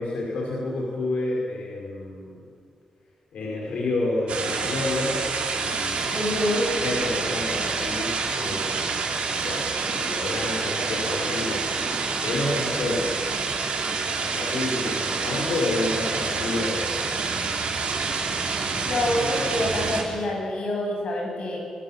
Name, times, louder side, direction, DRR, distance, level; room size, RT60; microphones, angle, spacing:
voice 1, 0.0-2.4 3.3-5.2 5.6-6.2 6.8-8.9 9.3-9.6 9.9-11.6 12.2-13.1 14.2-16.8, left 2 dB, 90° left, -3 dB, 5.2 m, -29 dB
sound 1, 4.3-20.0, right 4 dB, 75° right, 4.5 m, -27 dB
voice 2, 6.1-6.7 18.9-21.6, left 1 dB, 60° left, 0 dB, 7.9 m, -26 dB
25.5 x 22.5 x 7.5 m, 2.2 s
wide cardioid pair, 115°, 2 cm